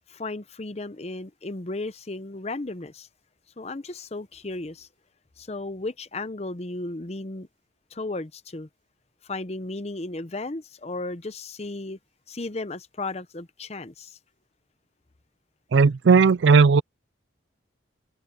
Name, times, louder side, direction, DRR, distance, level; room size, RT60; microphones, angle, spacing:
voice 1, 0.1-3.1 3.6-4.9 5.4-7.5 7.9-8.7 9.3-12.0 12.3-14.2, left 2 dB, 35° left, 0.7 m, -34 dB
voice 2, 15.7-16.8, right 5 dB, 70° right, 0.4 m, -16 dB
open air
head